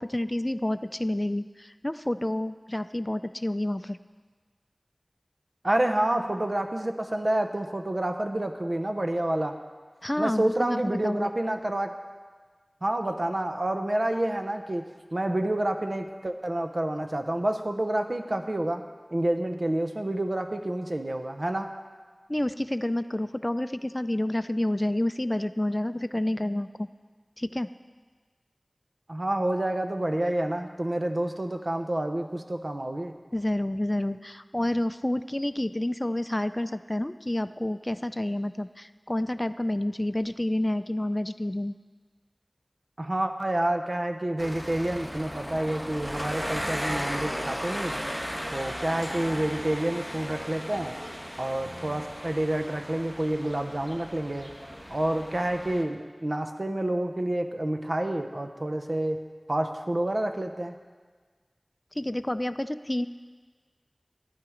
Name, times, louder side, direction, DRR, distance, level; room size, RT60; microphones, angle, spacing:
voice 1, 0.0-4.0 10.0-11.3 22.3-26.9 27.4-27.7 33.3-41.7 62.0-63.1, left 1 dB, 30° left, 12 dB, 0.4 m, -29 dB
voice 2, 5.6-9.6 10.2-11.9 12.8-21.7 29.1-33.1 43.0-48.0 48.5-50.9 51.4-54.5 54.9-59.2 59.5-60.7, right 1 dB, 60° right, 5 dB, 0.8 m, -28 dB
sound 1, 44.4-55.8, equal, 10° right, 1.3 m, -36 dB
12.0 x 10.5 x 5.0 m, 1.5 s
wide cardioid pair, 40°, 0 cm